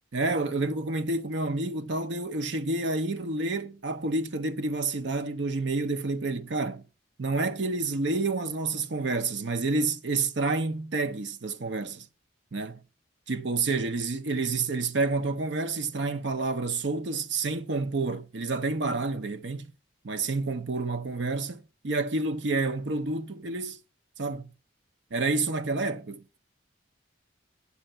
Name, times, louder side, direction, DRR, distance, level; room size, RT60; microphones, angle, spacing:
voice 1, 0.1-6.8 7.2-12.1 12.5-12.8 13.3-19.7 20.0-23.8 24.2-24.5 25.1-26.4, right 3 dB, 65° right, 0.7 m, -29 dB
8.9 x 5.7 x 5.5 m
head